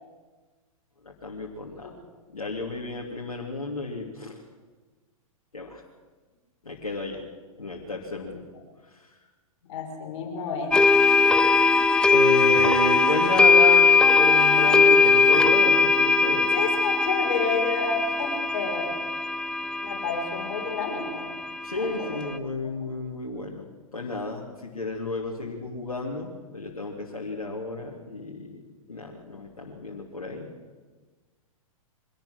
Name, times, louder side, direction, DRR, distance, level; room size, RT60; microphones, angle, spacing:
voice 1, 1.0-1.9 2.3-4.4 5.5-5.8 6.6-7.2 7.6-8.4 12.1-13.9 14.1-16.5 21.6-28.6 28.9-30.5, left 2 dB, 80° left, -2 dB, 3.1 m, -32 dB
voice 2, 9.7-10.7 12.8-12.9 16.5-18.9 19.8-21.3 21.7-22.2 22.6-22.8, left 5 dB, 50° left, 1 dB, 5.6 m, -30 dB
sound 1, 10.7-22.3, left 4 dB, 5° left, 0.7 m, -20 dB
24.0 x 17.5 x 6.3 m, 1.3 s
figure-of-eight pair, 110°, 18 cm